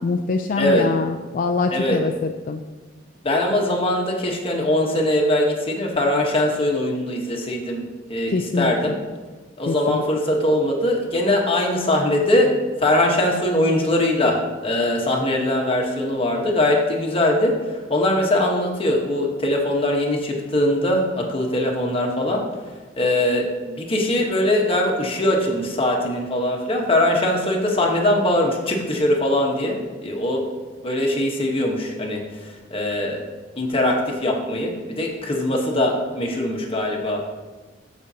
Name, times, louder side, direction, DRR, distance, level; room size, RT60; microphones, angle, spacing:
voice 1, 0.0-2.6 8.3-8.9 9.7-10.0, left 3 dB, 45° left, 5 dB, 0.4 m, -24 dB
voice 2, 3.2-7.8 8.1-9.0 9.6-12.5 12.8-22.4 23.0-30.4 30.8-33.2 33.5-37.2, left 1 dB, 30° left, 0 dB, 1.2 m, -21 dB
13.0 x 5.2 x 2.8 m, 1.3 s
head